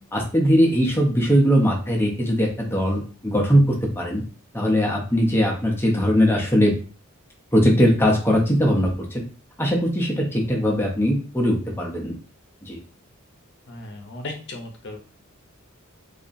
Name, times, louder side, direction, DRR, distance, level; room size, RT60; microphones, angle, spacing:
voice 1, 0.1-4.2 4.5-6.7 7.5-9.2 9.6-12.2 12.6-12.8, equal, 10° left, 0 dB, 0.6 m, -20 dB
voice 2, 13.7-15.0, left 2 dB, 55° left, 3 dB, 0.6 m, -36 dB
2.8 x 2.4 x 2.5 m, 0.38 s
head